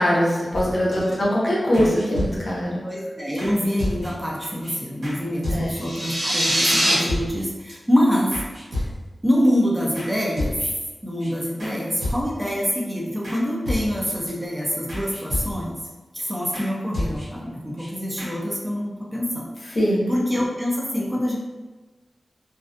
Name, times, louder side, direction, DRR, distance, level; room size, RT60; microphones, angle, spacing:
voice 1, 0.0-2.8 5.5-5.7 19.7-20.1, equal, 45° left, -4 dB, 0.6 m, -22 dB
sound 1, 0.5-1.1 1.7-2.7 3.4-3.5 3.8-4.3 4.6-4.7 5.0-5.2 5.4-6.0 6.7-6.8 7.1-7.7 8.3-9.2 9.9-10.1 10.4-10.9 11.2-11.3 11.6-11.7 12.0-12.5 13.2-13.4 13.6-14.3 14.9-15.8 16.5-16.7 16.9-17.5 17.8-17.9 18.2-18.3, left 1 dB, 90° right, 1.1 m, -31 dB
voice 2, 2.8-8.4 8.7-8.9 9.2-10.6 11.0-15.8 16.1-19.8 20.1-21.4, equal, 15° right, -3 dB, 0.4 m, -25 dB
sound 2, 5.7-6.9, right 1 dB, 70° right, 0.8 m, -22 dB
2.4 x 2.3 x 2.4 m, 1.2 s
wide cardioid pair, 115°, 0 cm